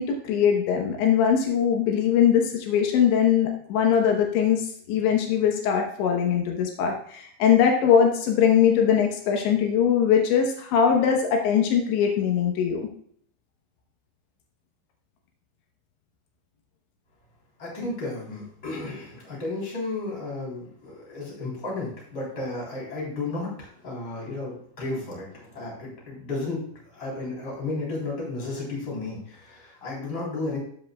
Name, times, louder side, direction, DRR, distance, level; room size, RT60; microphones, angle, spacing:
voice 1, 0.0-12.9, left 8 dB, 80° left, 2 dB, 3.4 m, -21 dB
voice 2, 17.6-26.6 26.9-30.6, left 2 dB, 25° left, -4 dB, 3.6 m, -33 dB
14.0 x 7.6 x 2.3 m, 0.63 s
omnidirectional pair, 5.2 m